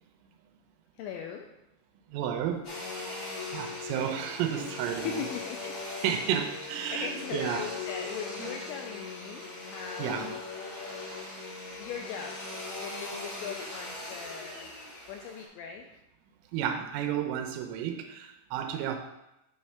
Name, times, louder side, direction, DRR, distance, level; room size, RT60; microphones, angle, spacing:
voice 1, 1.0-1.5 4.9-5.8 6.9-10.4 11.7-12.4 12.8-14.7 15.1-15.9, left 7 dB, 85° left, 3 dB, 2.6 m, -39 dB
voice 2, 2.1-5.2 5.9-7.7 8.4-8.5 10.0-10.3 16.5-19.0, right 9 dB, 85° right, 4 dB, 3.2 m, -32 dB
Domestic sounds home sounds, 2.6-15.5, left 3 dB, 70° left, 1.2 m, -40 dB
7.9 x 3.2 x 5.7 m, 0.89 s
omnidirectional pair, 5.7 m